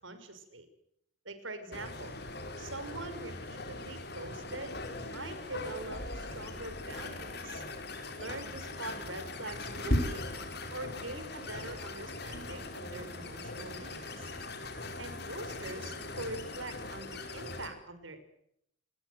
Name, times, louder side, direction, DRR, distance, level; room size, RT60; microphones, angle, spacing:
voice 1, 0.0-0.7 1.2-2.2 2.6-7.6 8.2-10.3 10.7-14.3 15.0-18.2, right 2 dB, 85° right, 11 dB, 5.9 m, -44 dB
sound 1, 1.7-17.7, left 1 dB, 55° left, 5.4 m, -39 dB
29.0 x 20.5 x 8.1 m, 0.73 s
head